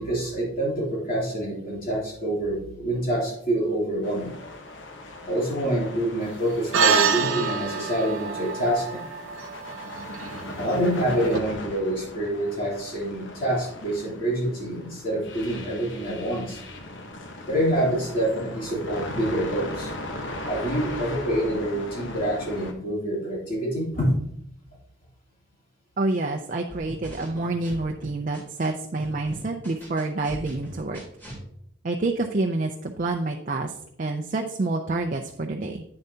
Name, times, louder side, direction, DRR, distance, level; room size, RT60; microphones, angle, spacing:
voice 1, 0.0-4.4 5.2-9.1 10.6-16.6 17.5-19.9 20.4-24.1, right 1 dB, 45° left, -5 dB, 2.9 m, -26 dB
sound 1, 4.0-22.7, left 2 dB, 65° left, 1.0 m, -38 dB
sound 2, 6.7-11.4, right 6 dB, 75° right, 0.6 m, -26 dB
voice 2, 26.0-31.0 31.8-35.8, right 2 dB, 40° right, 3 dB, 0.5 m, -28 dB
sound 3, 26.7-28.7 29.0-31.4, equal, 10° left, 2.9 m, -40 dB
8.8 x 7.0 x 2.8 m, 0.71 s
head